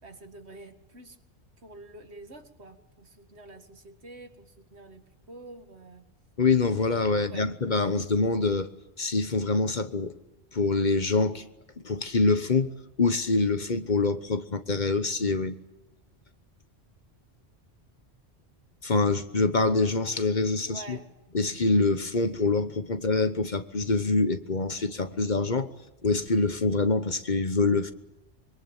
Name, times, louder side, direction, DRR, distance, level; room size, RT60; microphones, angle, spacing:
voice 1, 0.0-1.2 1.6-6.1 7.1-7.5 20.6-21.1, right 2 dB, 75° right, 2.3 m, -47 dB
voice 2, 6.4-8.7 9.0-10.1 10.5-11.4 11.8-12.7 13.0-15.6 18.8-21.0 21.3-25.7 26.0-27.9, left 3 dB, 45° left, 1.2 m, -25 dB
25.5 x 23.5 x 9.0 m
omnidirectional pair, 1.1 m